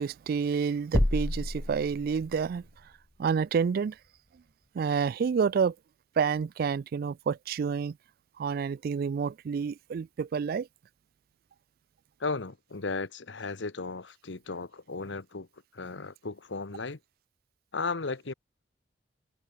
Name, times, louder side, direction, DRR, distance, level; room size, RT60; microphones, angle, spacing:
voice 1, 0.0-2.6 3.2-3.9 4.8-5.7 6.2-7.9 8.4-10.7, right 6 dB, 55° right, 0.3 m, -29 dB
sound 1, 0.9-2.5, left 1 dB, 20° left, 0.7 m, -29 dB
voice 2, 12.2-15.5 15.7-17.0 17.7-18.3, left 4 dB, 80° left, 1.1 m, -35 dB
head